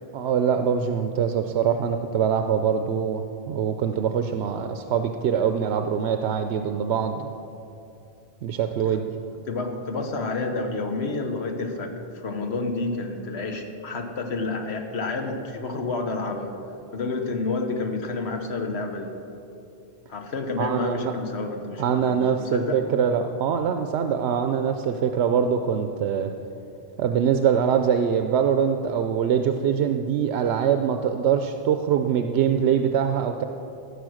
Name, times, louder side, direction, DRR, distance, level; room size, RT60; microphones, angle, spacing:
voice 1, 0.1-7.3 8.4-9.1 20.6-21.1 21.8-26.3 27.0-33.4, right 7 dB, 90° right, 7 dB, 0.9 m, -23 dB
voice 2, 9.5-16.5 16.9-19.1 20.1-22.8, left 3 dB, 80° left, 4 dB, 1.4 m, -29 dB
15.0 x 6.6 x 6.3 m, 2.8 s
omnidirectional pair, 1.1 m